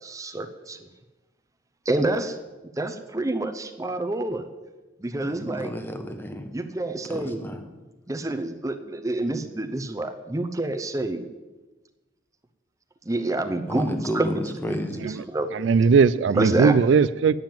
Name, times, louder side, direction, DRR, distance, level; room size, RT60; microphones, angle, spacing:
voice 1, 0.0-0.8 1.9-2.4 2.8-4.5 5.0-5.7 6.5-7.4 8.1-11.3 13.1-14.3 14.7-15.5 16.4-16.7, right 2 dB, 15° right, 9 dB, 0.6 m, -27 dB
voice 2, 5.2-6.5 7.1-7.6 13.7-15.2, equal, 10° left, 6 dB, 1.0 m, -32 dB
voice 3, 15.5-17.4, right 5 dB, 65° right, 16 dB, 0.3 m, -19 dB
9.3 x 7.5 x 8.9 m, 1.2 s
head